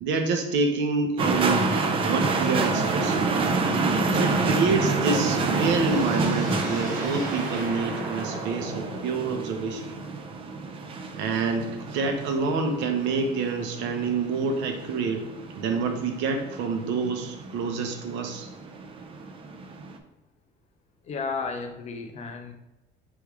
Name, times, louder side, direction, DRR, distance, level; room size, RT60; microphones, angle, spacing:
voice 1, 0.0-1.7 2.1-3.3 4.1-9.8 11.1-15.3 15.5-18.5, right 4 dB, 75° right, 4 dB, 0.8 m, -27 dB
sound 1, 1.2-20.0, right 3 dB, 30° right, 0.4 m, -28 dB
sound 2, 4.8-9.8, right 2 dB, 50° right, 1.4 m, -37 dB
voice 2, 21.0-22.5, left 4 dB, 35° left, 5 dB, 0.5 m, -33 dB
3.4 x 3.1 x 4.7 m, 0.99 s
cardioid pair, 150°, 19 cm